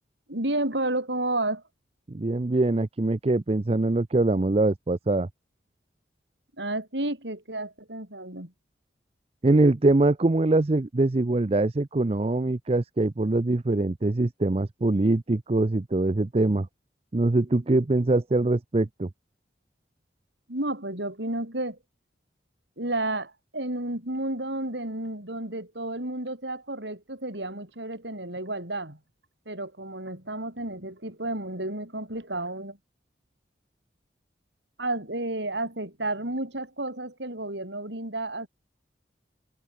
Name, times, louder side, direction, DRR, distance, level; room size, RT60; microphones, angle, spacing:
voice 1, 0.3-1.6 6.6-8.5 20.5-21.8 22.8-29.0 29.5-32.8 34.8-38.5, right 2 dB, 70° right, 7.9 m, -31 dB
voice 2, 2.1-5.3 9.4-16.7 17.1-19.1, right 2 dB, 35° right, 0.5 m, -23 dB
head